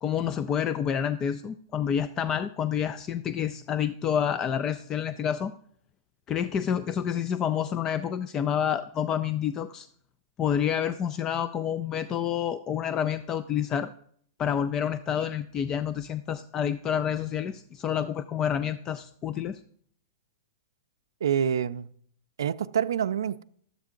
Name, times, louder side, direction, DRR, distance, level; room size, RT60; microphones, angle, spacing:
voice 1, 0.0-5.5 6.3-9.9 10.4-13.9 14.4-19.6, left 8 dB, 25° left, 0.3 m, -28 dB
voice 2, 21.2-21.9 22.4-23.4, right 8 dB, 90° right, 0.4 m, -27 dB
11.5 x 8.1 x 3.7 m
hypercardioid pair, 140°, 2 cm